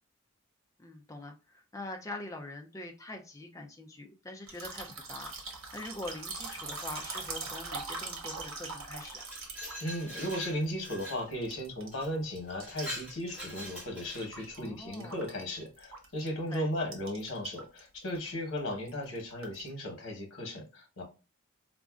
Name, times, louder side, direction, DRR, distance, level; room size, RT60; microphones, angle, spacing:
voice 1, 0.8-9.3 14.6-15.2 16.5-16.7, left 2 dB, 15° left, 0.4 m, -44 dB
sound 1, 4.5-11.0 11.3-12.1 12.4-14.7 14.9-16.3 16.5-16.6 16.9-17.8 18.1-18.3 18.7-19.7, right 4 dB, 85° right, 0.9 m, -42 dB
Glass, 9.0-11.3 11.9-12.1 12.5-14.5, equal, 5° right, 1.7 m, -43 dB
voice 2, 9.8-21.0, equal, 90° left, 1.0 m, -36 dB
4.1 x 2.5 x 2.3 m
head